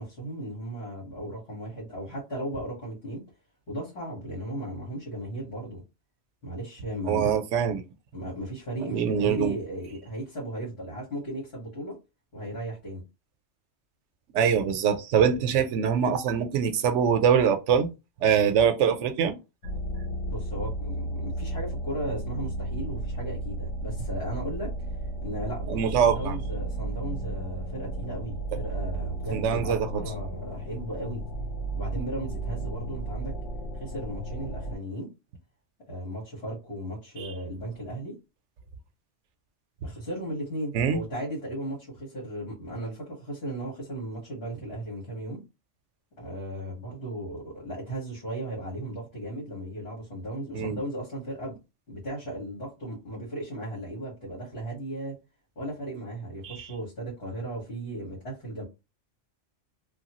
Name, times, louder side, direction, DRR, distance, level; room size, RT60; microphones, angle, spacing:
voice 1, 0.0-3.3 3.7-5.8 6.4-7.4 8.1-12.0 12.3-13.0 20.3-24.7 25.2-31.2 31.7-33.3 33.8-35.1 35.9-38.2 39.8-45.4 46.2-51.6 51.9-55.1 55.6-58.6, right 1 dB, 60° left, 1.7 m, -36 dB
voice 2, 7.1-7.9 8.8-9.6 14.3-17.9 18.2-19.4 25.7-26.3 29.3-30.0 37.2-37.3 40.7-41.0 50.5-50.8 56.4-56.7, right 7 dB, 90° right, 0.9 m, -24 dB
sound 1, 19.6-34.8, right 1 dB, 85° left, 1.1 m, -34 dB
3.1 x 2.3 x 2.9 m
omnidirectional pair, 1.2 m